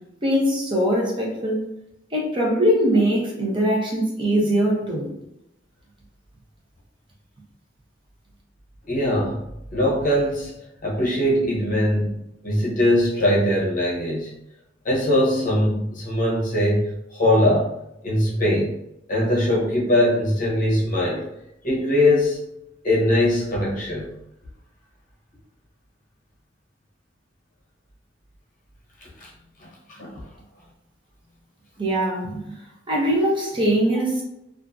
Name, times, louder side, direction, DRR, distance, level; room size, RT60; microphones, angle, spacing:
voice 1, 0.2-1.7 2.1-5.1 31.8-32.4 32.9-34.2, equal, 25° right, -3 dB, 0.7 m, -21 dB
voice 2, 8.9-9.4 9.7-10.5 10.8-14.3 14.8-17.7 18.0-18.7 19.1-21.2 21.6-22.4 22.8-24.1 29.2-29.3 29.6-29.7 30.0-30.2, left 1 dB, 45° left, -4 dB, 0.7 m, -21 dB
2.6 x 2.4 x 2.3 m, 0.83 s
head